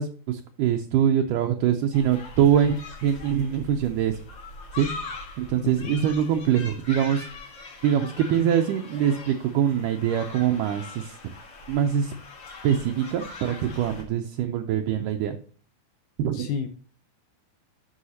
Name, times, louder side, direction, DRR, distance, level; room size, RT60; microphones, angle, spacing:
voice 1, 0.0-4.2 4.7-4.9 5.4-7.3 7.8-11.2 11.7-12.1 12.6-15.4 16.2-16.5, right 9 dB, 80° right, 5 dB, 2.0 m, -23 dB
sound 1, 1.9-14.0, left 3 dB, 45° left, 1.6 m, -41 dB
voice 2, 5.6-6.0 16.3-16.7, left 7 dB, 80° left, 7 dB, 1.9 m, -31 dB
11.0 x 6.3 x 2.8 m, 0.43 s
omnidirectional pair, 4.2 m